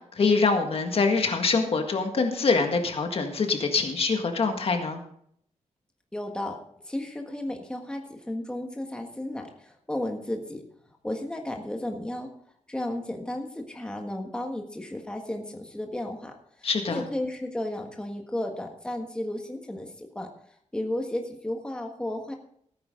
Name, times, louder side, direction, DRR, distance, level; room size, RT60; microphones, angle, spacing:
voice 1, 0.2-5.0 16.6-17.0, left 4 dB, 50° left, 4 dB, 1.8 m, -24 dB
voice 2, 6.1-10.6 11.0-12.3 12.7-22.3, left 1 dB, 5° left, 2 dB, 1.5 m, -34 dB
16.5 x 9.5 x 3.8 m, 0.66 s
wide cardioid pair, 140°, 12 cm